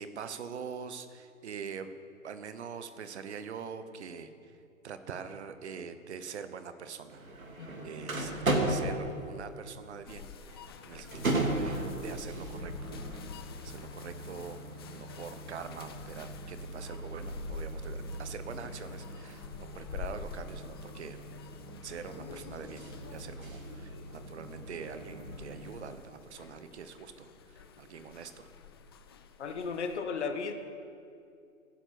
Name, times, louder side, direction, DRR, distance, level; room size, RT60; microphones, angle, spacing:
voice 1, 0.0-1.9 2.2-4.3 4.8-7.2 7.8-12.9 13.6-14.6 14.9-19.5 19.7-21.2 21.8-22.9 23.1-28.5, right 6 dB, 50° right, 10 dB, 1.1 m, -44 dB
sound 1, 7.1-25.7, right 2 dB, 75° right, 2.8 m, -37 dB
voice 2, 7.6-8.2 29.4-30.5, left 5 dB, 55° left, 6 dB, 1.8 m, -36 dB
sound 2, 10.1-30.0, left 6 dB, 20° left, 0.4 m, -48 dB
17.5 x 9.9 x 6.1 m, 2.5 s
figure-of-eight pair, 125°, 41 cm